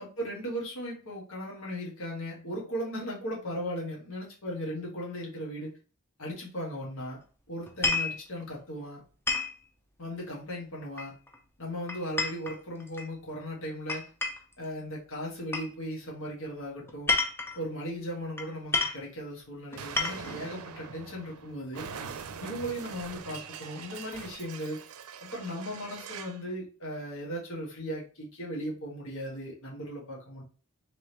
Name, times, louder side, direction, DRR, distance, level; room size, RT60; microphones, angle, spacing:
voice 1, 0.0-5.8 6.2-7.2 7.5-9.0 10.0-11.1 11.6-14.1 14.6-17.1 17.5-21.9 22.4-24.8 25.2-30.4, equal, 80° left, -3 dB, 1.6 m, -37 dB
sound 1, 7.7-8.2 9.3-9.6 11.0-11.4 11.9-13.1 13.9-14.5 15.5-15.7 16.9-17.6 18.4-18.5 18.7-19.0 19.7-20.4, left 3 dB, 10° left, 0.6 m, -30 dB
Explosion, 19.8-26.4, right 6 dB, 90° right, 0.5 m, -43 dB
3.7 x 3.4 x 3.0 m, 0.38 s
head